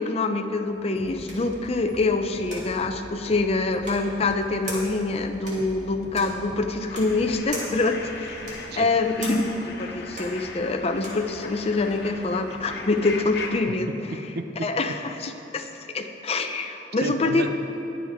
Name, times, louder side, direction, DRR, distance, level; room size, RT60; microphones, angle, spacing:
voice 1, 0.0-8.3 8.8-13.9 14.6-15.7 15.9-17.5, left 3 dB, 35° left, 5 dB, 0.6 m, -25 dB
sound 1, 0.6-11.3, right 1 dB, 45° right, 2.9 m, -41 dB
sound 2, 1.0-7.4, left 1 dB, 20° left, 0.9 m, -44 dB
sound 3, 6.9-13.5, left 3 dB, 65° left, 1.3 m, -39 dB
voice 2, 14.1-15.0 17.0-17.6, right 3 dB, 60° right, 8 dB, 0.7 m, -33 dB
21.5 x 7.2 x 3.6 m, 3.0 s
head